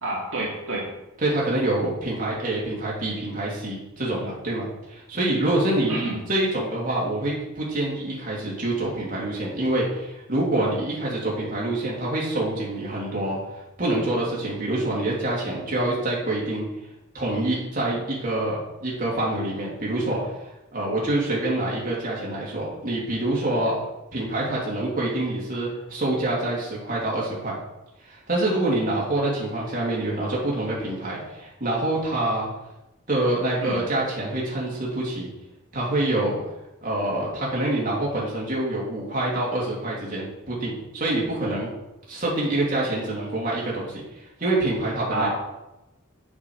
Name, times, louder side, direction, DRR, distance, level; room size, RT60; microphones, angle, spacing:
voice 1, 0.0-0.9 5.9-6.1 33.6-33.8 45.1-45.3, right 2 dB, 65° right, -5 dB, 2.4 m, -28 dB
voice 2, 1.2-13.4 13.8-16.7 17.1-20.3 20.7-23.8 24.1-27.6 28.1-32.5 33.1-35.3 35.7-36.4 36.8-41.7 42.1-44.0 44.4-45.3, right 1 dB, 40° right, -5 dB, 2.9 m, -26 dB
7.7 x 6.2 x 6.4 m, 0.93 s
head